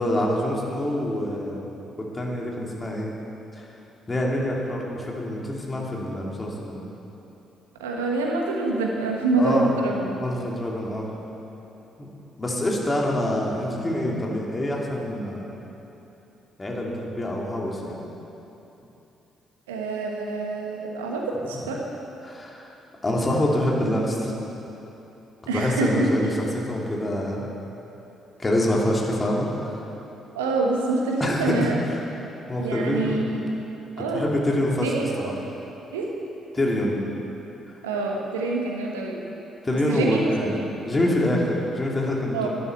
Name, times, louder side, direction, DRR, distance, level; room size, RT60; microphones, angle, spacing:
voice 1, 0.0-1.7 2.0-3.1 3.6-3.7 4.1-6.9 9.4-9.7 10.0-11.1 12.0-12.1 12.4-15.6 16.6-18.0 22.2-22.7 23.0-24.3 25.5-27.5 28.4-29.9 31.2-31.7 32.5-33.5 34.1-35.3 36.5-37.0 39.6-42.5, left 1 dB, 25° left, -2 dB, 2.8 m, -26 dB
voice 2, 7.8-10.1 19.7-21.8 25.5-26.1 30.3-31.8 32.6-33.4 34.0-34.3 34.8-35.3 35.9-36.1 37.8-39.2 39.7-40.2 42.3-42.5, right 3 dB, 80° right, 0 dB, 1.3 m, -26 dB
11.5 x 11.0 x 7.2 m, 3.0 s
figure-of-eight pair, 45°, 0 cm